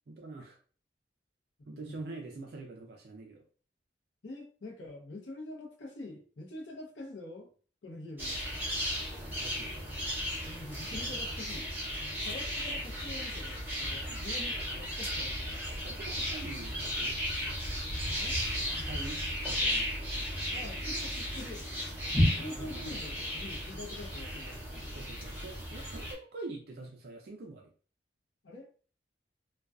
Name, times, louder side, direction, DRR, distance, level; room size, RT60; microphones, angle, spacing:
voice 1, 0.1-0.6 1.7-3.4 9.3-9.9 14.0-14.2 15.8-17.2 18.9-19.9 22.6-23.0 24.9-27.7, right 3 dB, 55° right, 2 dB, 0.4 m, -45 dB
voice 2, 4.2-7.5 7.8-8.4 10.4-11.7 12.2-15.7 18.2-18.4 20.5-21.7 22.4-25.0 28.4-28.7, left 2 dB, 75° left, 0 dB, 0.7 m, -45 dB
sound 1, 8.2-26.1, equal, 10° right, 0.7 m, -34 dB
2.5 x 2.2 x 2.3 m, 0.40 s
head